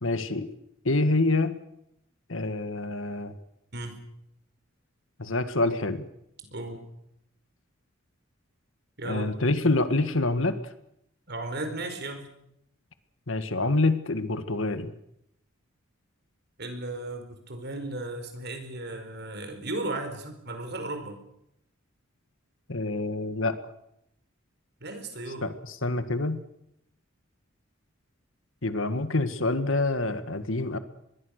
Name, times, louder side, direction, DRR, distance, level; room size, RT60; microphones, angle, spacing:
voice 1, 0.0-0.5 0.9-1.5 2.3-3.4 5.2-6.1 9.0-10.6 13.3-14.9 22.7-23.6 25.4-26.4 28.6-30.8, left 2 dB, 70° left, 11 dB, 1.9 m, -26 dB
voice 2, 6.5-6.8 9.0-9.3 11.3-12.2 16.6-21.2 24.8-25.5, right 2 dB, 55° right, 7 dB, 4.8 m, -35 dB
25.0 x 21.5 x 6.7 m, 0.76 s
head